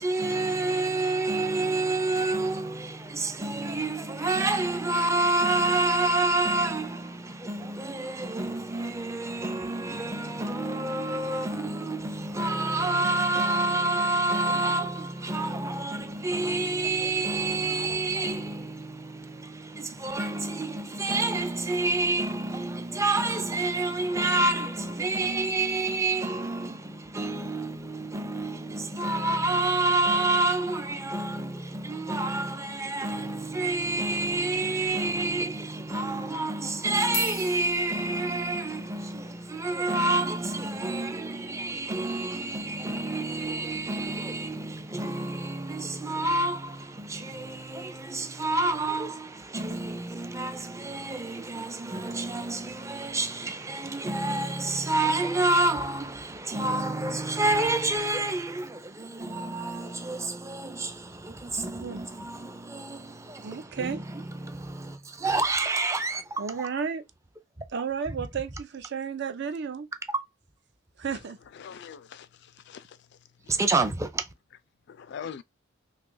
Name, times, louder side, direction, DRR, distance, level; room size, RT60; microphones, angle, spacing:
voice 1, 0.0-66.4 70.1-70.2 73.5-74.3, right 2 dB, 15° right, 0.5 m, -28 dB
sound 1, 37.1-45.7, left 6 dB, 90° left, 0.7 m, -45 dB
voice 2, 63.4-64.0 66.4-67.0 67.7-69.9 71.0-71.4, right 6 dB, 60° right, 0.6 m, -32 dB
voice 3, 71.5-73.0 74.9-75.4, left 7 dB, 60° left, 0.4 m, -42 dB
2.8 x 2.4 x 3.8 m
head